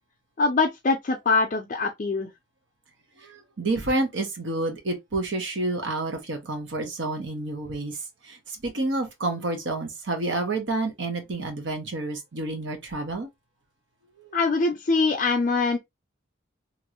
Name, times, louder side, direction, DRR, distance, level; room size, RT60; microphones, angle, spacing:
voice 1, 0.4-2.3 14.3-15.8, left 3 dB, 40° left, 0.4 m, -23 dB
voice 2, 3.2-8.0 8.2-13.3 14.2-14.3, right 2 dB, 70° right, 1.0 m, -29 dB
3.0 x 2.5 x 2.9 m
head